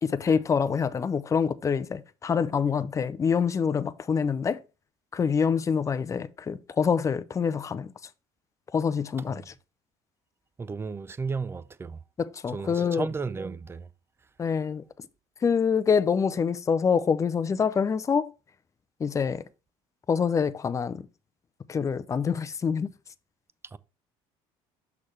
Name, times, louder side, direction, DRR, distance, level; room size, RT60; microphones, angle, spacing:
voice 1, 0.0-4.6 5.1-7.9 8.7-9.5 12.2-13.1 14.4-14.8 15.4-18.3 19.0-19.4 20.1-21.0 21.7-22.9, left 6 dB, 25° left, 0.6 m, -26 dB
voice 2, 10.6-12.0 12.5-13.9 23.7-23.8, right 4 dB, 20° right, 0.5 m, -34 dB
6.4 x 5.9 x 3.2 m
supercardioid pair, 95°, 12 cm